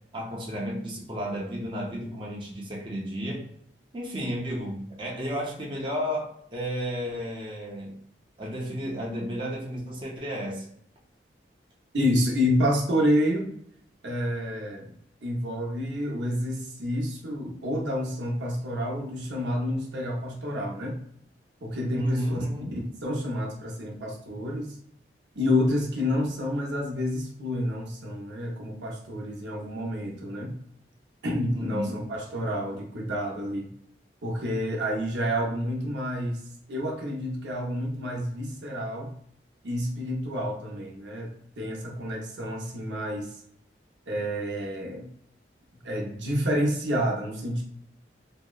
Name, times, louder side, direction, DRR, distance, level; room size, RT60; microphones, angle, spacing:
voice 1, 0.1-3.4 3.9-8.0 8.4-10.6 21.9-22.7 31.5-32.0, equal, 30° right, -4 dB, 0.6 m, -33 dB
voice 2, 11.9-13.5 14.0-14.9 15.2-21.0 21.6-22.5 22.8-24.7 25.4-30.6 31.2-33.7 34.2-36.4 36.7-39.1 39.6-43.3 44.1-45.1 45.8-47.6, equal, 85° right, -1 dB, 0.6 m, -29 dB
2.7 x 2.0 x 2.3 m, 0.68 s
head